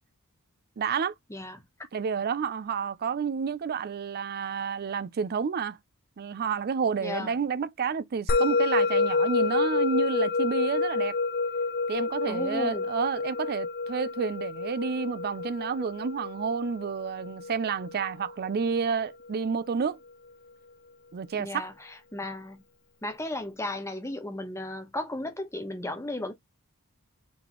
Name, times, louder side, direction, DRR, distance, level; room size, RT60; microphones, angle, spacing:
voice 1, 0.8-1.1 1.9-5.8 6.2-11.1 11.9-20.0 21.1-21.7, right 6 dB, 45° right, 0.4 m, -30 dB
voice 2, 1.3-1.6 7.0-7.3 12.3-12.9 21.4-22.6 23.0-26.3, left 1 dB, 15° left, 0.9 m, -35 dB
Musical instrument, 8.3-18.9, left 3 dB, 45° left, 0.5 m, -29 dB
4.1 x 3.3 x 3.0 m
head